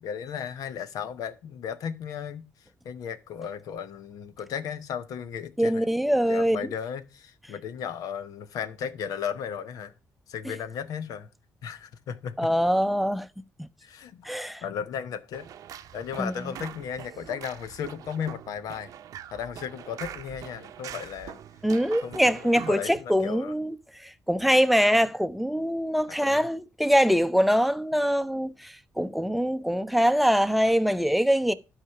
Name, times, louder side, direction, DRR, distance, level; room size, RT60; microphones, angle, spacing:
voice 1, 0.0-5.9 6.2-9.9 10.3-11.3 11.6-12.5 13.8-15.5 15.9-18.9 19.3-21.4 22.0-23.5 26.1-26.5, left 7 dB, 80° left, 0.9 m, -35 dB
voice 2, 5.6-6.7 12.4-13.3 13.6-13.7 14.2-14.6 16.2-16.3 21.6-31.5, equal, ahead, 0.6 m, -23 dB
sound 1, 15.3-23.0, right 9 dB, 75° right, 0.7 m, -43 dB
11.5 x 4.9 x 5.8 m
cardioid pair, 90°, 6 cm